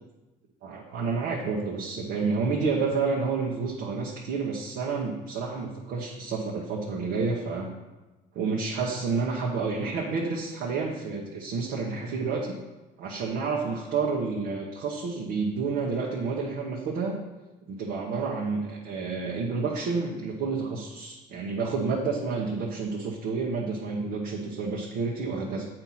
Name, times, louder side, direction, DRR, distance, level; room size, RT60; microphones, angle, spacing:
voice 1, 0.6-7.7 8.3-12.6 13.0-17.2 17.7-25.7, right 4 dB, 80° right, -2 dB, 1.1 m, -29 dB
7.9 x 4.4 x 5.7 m, 1.1 s
cardioid pair, 110°, 17 cm